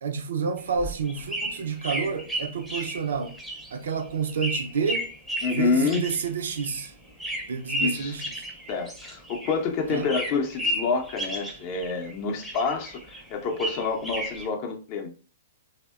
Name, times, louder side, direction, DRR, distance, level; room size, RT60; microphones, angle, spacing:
voice 1, 0.0-3.4 3.7-5.1 5.5-6.9 7.5-8.2 9.9-10.1, right 6 dB, 70° right, 0.4 m, -29 dB
sound 1, 0.6-9.6 9.9-12.1 12.4-14.5, right 1 dB, ahead, 0.6 m, -33 dB
voice 2, 5.4-6.1 7.8-8.2 8.7-15.1, left 4 dB, 45° left, 0.5 m, -27 dB
2.6 x 2.0 x 2.3 m
hypercardioid pair, 115°, 0 cm